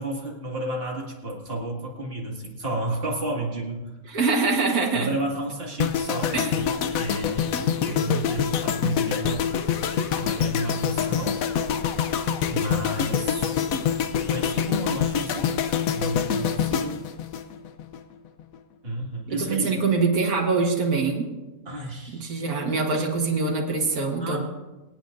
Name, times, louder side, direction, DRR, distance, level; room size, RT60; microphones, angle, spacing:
voice 1, 0.0-4.0 4.9-9.5 10.1-11.3 12.5-13.5 14.3-15.6 15.9-17.0 18.8-19.8 21.7-22.6 24.2-24.4, right 1 dB, 40° right, -2 dB, 2.4 m, -32 dB
voice 2, 4.1-5.2 6.3-6.6 19.4-21.3 22.1-24.4, right 4 dB, 80° right, -1 dB, 2.0 m, -24 dB
sound 1, 5.8-18.0 18.2-18.5, left 8 dB, 70° left, 1.1 m, -26 dB
25.5 x 8.9 x 2.6 m, 1.1 s
omnidirectional pair, 1.5 m